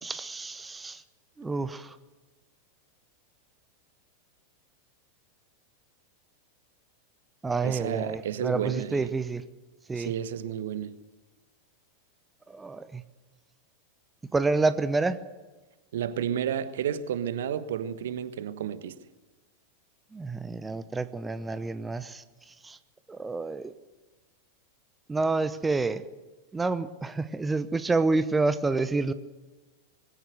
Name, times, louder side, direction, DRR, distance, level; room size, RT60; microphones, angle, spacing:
voice 1, 0.0-1.0 1.4-2.0 7.4-9.4 9.9-10.1 12.5-13.0 14.3-15.2 20.1-22.2 22.6-22.8 23.1-23.7 25.1-26.1 26.5-29.1, right 3 dB, 10° right, 0.9 m, -28 dB
voice 2, 7.6-9.1 9.9-10.9 15.9-19.0, right 9 dB, 60° right, 1.2 m, -31 dB
21.5 x 16.5 x 7.9 m
figure-of-eight pair, 90°, 0 cm